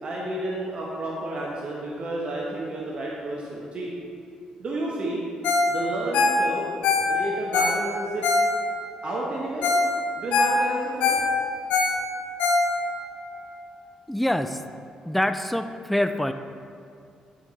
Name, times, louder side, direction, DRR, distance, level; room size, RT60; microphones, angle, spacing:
voice 1, 0.0-3.9 4.6-5.2 5.7-6.6 7.0-8.3 9.0-9.7 10.2-11.2, right 1 dB, 50° right, -3 dB, 1.1 m, -31 dB
Ringtone, 5.4-5.7 6.0-8.9 9.3-9.4 9.6-9.9 10.2-13.0 13.5-13.6, left 3 dB, 85° left, 0.9 m, -23 dB
voice 2, 14.1-14.6 15.0-16.3, left 1 dB, 5° left, 8 dB, 0.3 m, -25 dB
9.1 x 4.8 x 4.1 m, 2.4 s
cardioid pair, 85°, 2 cm